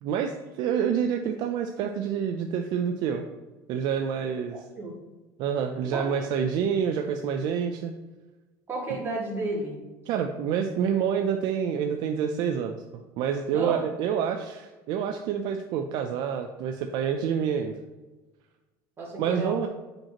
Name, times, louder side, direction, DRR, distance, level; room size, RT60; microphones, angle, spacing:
voice 1, 0.0-3.2 3.7-4.6 5.4-7.9 10.1-17.8 19.2-19.7, right 7 dB, 60° right, 5 dB, 0.5 m, -28 dB
voice 2, 4.5-4.9 5.9-6.1 8.7-9.8 13.5-13.8 19.0-19.7, right 2 dB, 25° right, -5 dB, 2.1 m, -32 dB
7.2 x 5.2 x 2.9 m, 1.2 s
cardioid pair, 150°, 9 cm